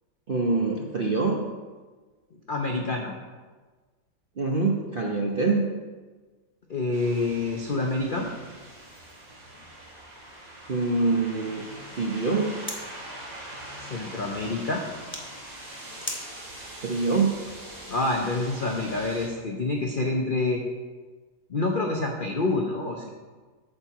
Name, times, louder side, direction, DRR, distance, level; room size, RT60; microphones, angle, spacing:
voice 1, 0.3-1.4 4.4-5.6 10.7-11.6 12.0-12.6 16.8-17.4, right 3 dB, 50° right, -1 dB, 0.6 m, -25 dB
voice 2, 2.5-3.1 6.7-8.3 13.8-14.8 17.9-20.6 21.5-23.1, left 2 dB, 60° left, 1 dB, 0.5 m, -27 dB
sound 1, 6.9-19.3, right 1 dB, 70° right, 2.9 m, -43 dB
sound 2, 8.9-18.2, left 1 dB, 10° left, 0.8 m, -45 dB
8.5 x 4.5 x 7.1 m, 1.3 s
omnidirectional pair, 2.0 m